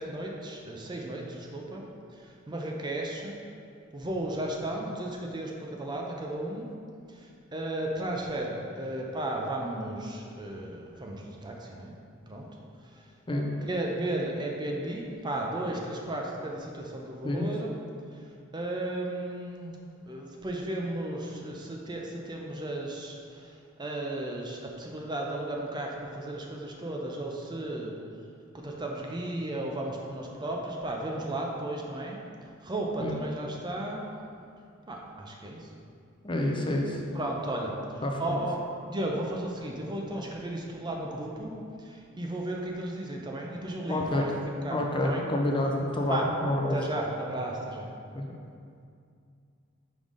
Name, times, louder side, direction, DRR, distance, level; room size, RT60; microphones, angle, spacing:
voice 1, 0.0-1.8 2.1-3.4 3.9-6.7 7.1-11.9 12.3-12.5 12.8-13.1 13.6-17.7 18.1-19.8 20.1-27.9 28.5-34.0 34.9-35.7 37.1-38.6 38.9-44.4 44.6-45.2 46.1-46.3 46.7-47.9, right 1 dB, 20° right, 0 dB, 0.5 m, -34 dB
voice 2, 36.2-37.0 38.0-38.4 43.9-44.3 44.7-46.8 48.2-48.4, left 1 dB, 25° left, 0 dB, 0.5 m, -28 dB
5.3 x 3.8 x 5.0 m, 2.3 s
head